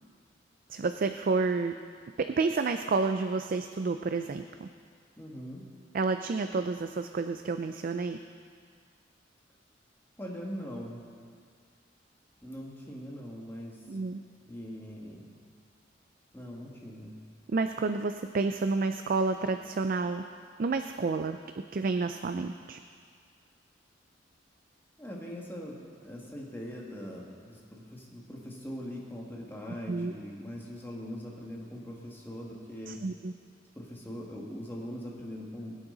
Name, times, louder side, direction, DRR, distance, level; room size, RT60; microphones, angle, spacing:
voice 1, 0.7-1.7 2.4-4.7 5.9-8.2 13.9-14.2 17.5-20.2 20.6-21.4 21.7-22.8 29.9-30.1 32.9-33.3, right 4 dB, 50° right, 7 dB, 0.4 m, -30 dB
voice 2, 5.2-5.6 10.2-11.0 12.4-13.8 14.5-15.3 16.3-17.2 25.0-33.0 33.8-35.8, equal, 10° left, -3 dB, 1.9 m, -41 dB
20.0 x 8.9 x 3.9 m, 2.1 s
head